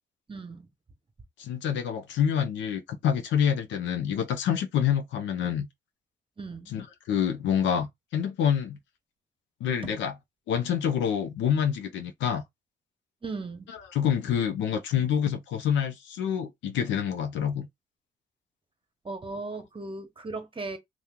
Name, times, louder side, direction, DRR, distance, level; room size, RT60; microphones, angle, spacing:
voice 1, 0.3-0.7 6.4-6.7 9.8-9.9 13.2-13.7 19.0-20.8, right 3 dB, 30° right, 1.0 m, -37 dB
voice 2, 1.4-5.7 6.7-8.8 9.6-10.1 10.5-12.4 13.9-17.7, left 8 dB, 90° left, 0.6 m, -27 dB
2.8 x 2.4 x 3.6 m
cardioid pair, 60°, 19 cm